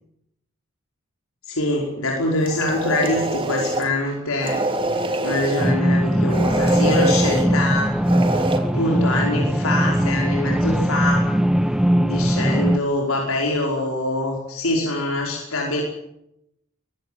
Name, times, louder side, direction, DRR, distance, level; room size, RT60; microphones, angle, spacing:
voice 1, 1.5-4.6 4.9-8.0 8.4-8.5 8.7-11.2 12.0-15.8, left 1 dB, 85° left, 0 dB, 5.2 m, -24 dB
sound 1, 2.4-3.9 4.4-5.7 6.3-7.5 8.0-8.6, right 2 dB, 25° right, 3.1 m, -24 dB
sound 2, 5.6-12.8, equal, 5° right, 0.9 m, -20 dB
23.0 x 17.0 x 9.6 m, 0.80 s
head